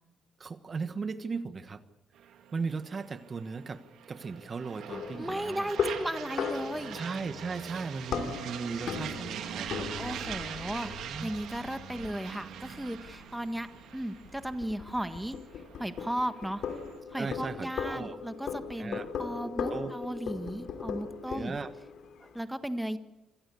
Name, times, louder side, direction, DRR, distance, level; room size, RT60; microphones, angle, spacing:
voice 1, 0.4-1.8 2.5-3.8 4.1-5.7 6.9-9.9 11.0-11.3 17.1-18.2 18.8-20.0 21.3-21.7, right 4 dB, 40° right, 11 dB, 1.3 m, -37 dB
sound 1, 2.2-17.0, right 9 dB, 80° right, 2.6 m, -43 dB
sound 2, 4.9-22.4, left 6 dB, 70° left, 3.0 m, -39 dB
voice 2, 5.2-7.0 10.0-13.7 13.9-15.4 15.8-16.6 17.1-21.5 22.2-23.0, right 1 dB, 5° right, 10 dB, 1.5 m, -35 dB
26.5 x 16.5 x 8.4 m, 0.97 s
cardioid pair, 90°, 0 cm